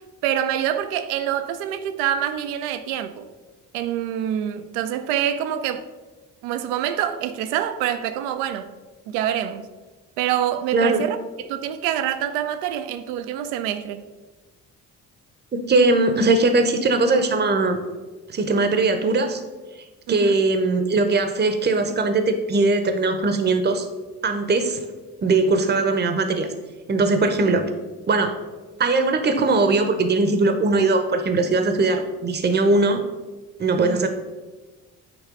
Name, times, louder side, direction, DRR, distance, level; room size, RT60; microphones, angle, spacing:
voice 1, 0.2-3.2 3.7-5.8 6.4-8.7 9.1-9.7 10.2-14.1 20.1-20.4 33.8-34.1, right 10 dB, 70° right, 0.6 m, -26 dB
voice 2, 10.7-11.0 15.5-17.8 18.3-19.4 20.1-23.9 24.2-24.8 25.2-26.5 26.9-27.6 28.1-28.3 28.8-33.0 33.6-34.1, right 3 dB, 20° right, 0.8 m, -20 dB
9.4 x 3.2 x 3.8 m
figure-of-eight pair, 40°, 47 cm